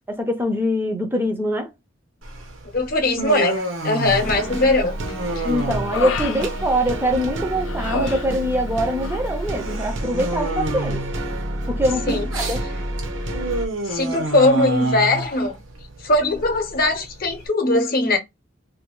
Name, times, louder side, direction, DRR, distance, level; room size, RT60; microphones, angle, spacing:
voice 1, 0.1-1.7 5.4-11.0 11.7-12.6, equal, 10° right, 0.5 m, -23 dB
Human voice, 2.2-17.4, right 2 dB, 90° right, 1.0 m, -30 dB
voice 2, 2.7-5.0 5.4-5.5 12.1-12.3 13.8-15.6 16.0-18.2, left 2 dB, 50° left, 0.7 m, -20 dB
Human voice 2, 4.0-4.7 5.1-7.2 7.6-8.7 9.0-9.3, left 3 dB, 90° left, 0.5 m, -31 dB
sound 1, 4.0-13.7, right 1 dB, 70° right, 0.7 m, -29 dB
2.6 x 2.6 x 3.0 m
head